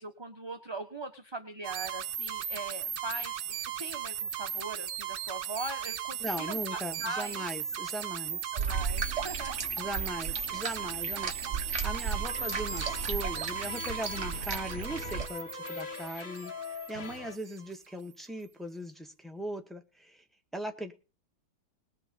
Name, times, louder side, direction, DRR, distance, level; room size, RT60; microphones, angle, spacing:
voice 1, 0.0-7.4 8.5-9.5 12.4-12.5, right 2 dB, 15° right, 1.0 m, -41 dB
sound 1, 1.6-17.5, right 8 dB, 65° right, 1.7 m, -37 dB
voice 2, 6.2-8.4 9.8-11.3 11.8-16.5 16.9-20.2 20.5-20.9, equal, ahead, 1.6 m, -39 dB
sound 2, 8.6-15.3, right 5 dB, 40° right, 1.6 m, -35 dB
sound 3, 12.2-17.4, left 6 dB, 65° left, 0.4 m, -42 dB
20.0 x 6.8 x 5.4 m
omnidirectional pair, 2.1 m